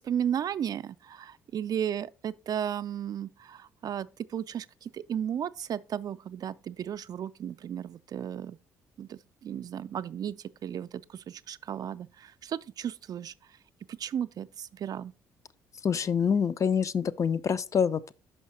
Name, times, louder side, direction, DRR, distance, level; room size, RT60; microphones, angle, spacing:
voice 1, 0.0-8.6 9.0-13.3 13.9-15.1, right 9 dB, 50° right, 0.4 m, -34 dB
voice 2, 15.8-18.1, left 7 dB, 40° left, 0.5 m, -26 dB
5.6 x 5.5 x 4.2 m
hypercardioid pair, 55°, 8 cm